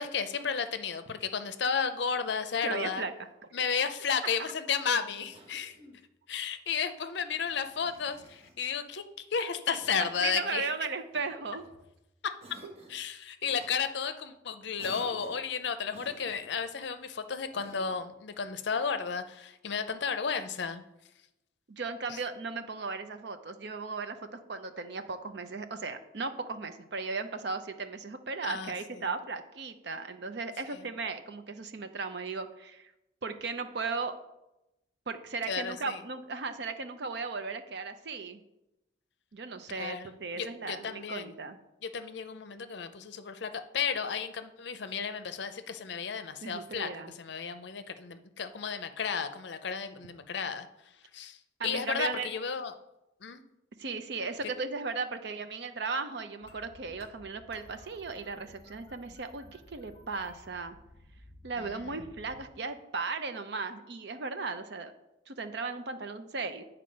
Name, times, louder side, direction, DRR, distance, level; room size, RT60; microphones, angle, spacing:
voice 1, 0.0-3.0 3.5-5.7 6.3-10.7 12.9-20.8 22.1-22.2 28.4-29.1 30.7-30.8 35.5-36.0 39.7-41.4 41.8-46.9 47.2-50.7 51.1-51.4 51.6-52.7 53.2-53.4 61.6-61.9, left 6 dB, 60° left, 10 dB, 0.6 m, -33 dB
voice 2, 2.6-3.1 10.0-11.6 21.7-32.9 33.2-34.1 35.1-38.4 39.3-41.6 46.4-47.1 51.6-52.3 53.8-60.8 61.4-64.9 65.3-66.6, right 4 dB, 55° right, 8 dB, 0.6 m, -36 dB
Cough, 5.3-6.1 7.4-8.6 9.8-10.3 11.1-11.9 12.4-13.0 13.6-13.8 14.8-15.5 15.9-16.7 17.5-18.1, right 2 dB, 30° right, 1.0 m, -52 dB
sound 1, 56.4-62.5, left 1 dB, 30° left, 1.4 m, -55 dB
9.5 x 4.3 x 5.2 m, 0.92 s
head